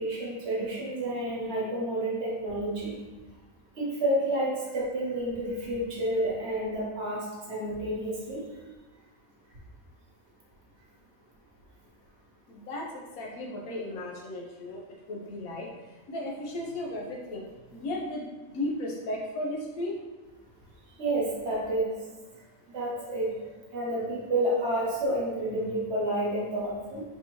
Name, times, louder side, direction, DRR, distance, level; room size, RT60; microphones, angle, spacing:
voice 1, 0.0-2.9 3.7-8.4 21.0-22.0 22.7-27.0, right 1 dB, 55° right, -4 dB, 1.1 m, -30 dB
voice 2, 12.5-14.8 15.1-15.7 16.1-20.0, left 1 dB, 85° left, -1 dB, 1.2 m, -35 dB
4.5 x 2.7 x 2.9 m, 1.2 s
omnidirectional pair, 1.5 m